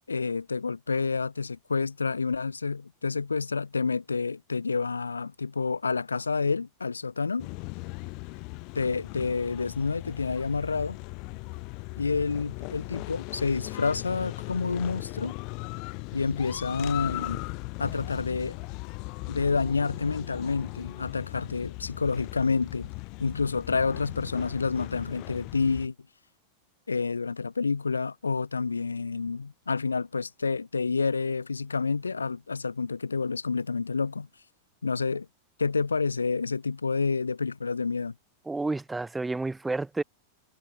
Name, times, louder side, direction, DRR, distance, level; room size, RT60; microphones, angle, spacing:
voice 1, 0.1-7.5 8.7-11.0 12.0-15.3 16.1-17.4 17.8-18.6 19.3-22.9 23.2-25.9 26.9-34.3 34.8-35.3 35.6-38.1, left 4 dB, 75° left, 5.6 m, -29 dB
sound 1, 7.4-25.9, left 31 dB, 45° left, 2.7 m, -38 dB
voice 2, 38.5-40.0, right 3 dB, 10° right, 5.8 m, -30 dB
figure-of-eight pair, 90°, 0 cm